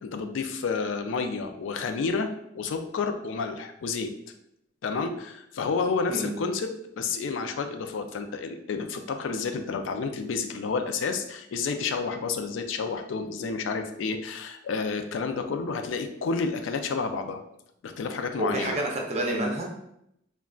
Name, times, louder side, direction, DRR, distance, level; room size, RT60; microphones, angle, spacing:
voice 1, 0.0-4.1 4.8-17.4 17.8-18.8, left 4 dB, 85° left, 7 dB, 0.4 m, -30 dB
voice 2, 18.4-19.7, right 1 dB, 35° right, 0 dB, 0.6 m, -28 dB
3.6 x 2.2 x 2.3 m, 0.78 s
head